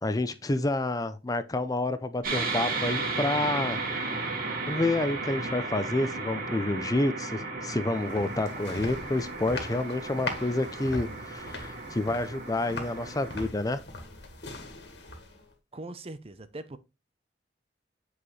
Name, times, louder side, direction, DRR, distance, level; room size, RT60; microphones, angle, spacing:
voice 1, 0.0-3.8 4.7-13.8, left 2 dB, 20° left, 0.6 m, -29 dB
sound 1, 2.2-13.5, right 3 dB, 55° right, 2.3 m, -34 dB
sound 2, 7.7-15.5, left 2 dB, 70° left, 1.9 m, -41 dB
voice 2, 15.7-16.8, right 2 dB, 35° right, 0.7 m, -41 dB
8.5 x 4.9 x 3.2 m
head